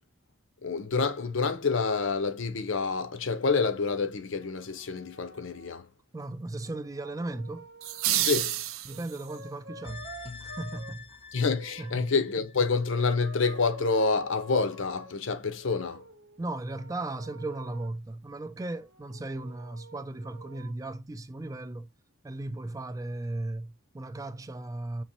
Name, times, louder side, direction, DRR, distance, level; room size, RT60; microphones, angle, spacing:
voice 1, 0.6-5.9 8.2-8.6 11.3-16.0, left 4 dB, 65° left, 0.6 m, -28 dB
sound 1, 4.3-5.7 6.6-8.4 8.9-10.9 11.3-12.1 12.8-15.1 15.6-17.9 18.7-20.7, right 1 dB, 55° right, 0.8 m, -49 dB
voice 2, 6.1-7.7 8.8-10.1 10.4-11.2 11.8-12.1 16.4-21.9 22.2-25.0, right 2 dB, 15° right, 0.3 m, -36 dB
sound 2, 7.8-9.4, right 13 dB, 85° right, 0.5 m, -29 dB
sound 3, 9.8-13.1 13.4-13.5, left 5 dB, 30° left, 0.6 m, -46 dB
5.4 x 3.0 x 2.9 m
head